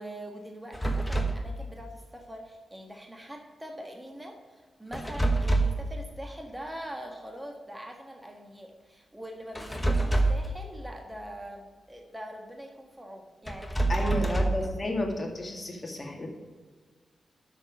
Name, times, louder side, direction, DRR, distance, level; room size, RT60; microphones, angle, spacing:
voice 1, 0.0-13.7 14.0-14.4, right 1 dB, 10° right, 1 dB, 1.5 m, -43 dB
sound 1, 0.7-1.5 4.9-5.9 9.5-10.5 13.5-14.7, right 2 dB, 10° left, 1.1 m, -26 dB
voice 2, 13.9-16.3, left 1 dB, 35° left, 1 dB, 2.1 m, -32 dB
6.9 x 6.2 x 7.4 m, 1.5 s
cardioid pair, 75°, 0 cm